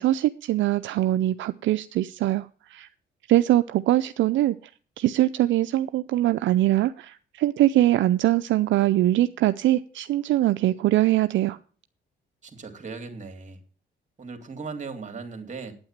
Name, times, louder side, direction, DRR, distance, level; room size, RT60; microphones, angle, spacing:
voice 1, 0.0-2.9 3.3-4.6 5.0-11.6, right 14 dB, 75° right, 0.5 m, -22 dB
voice 2, 12.4-13.6 14.2-15.7, right 4 dB, 40° right, 2.5 m, -37 dB
8.8 x 8.8 x 7.3 m
cardioid pair, 90°, 20 cm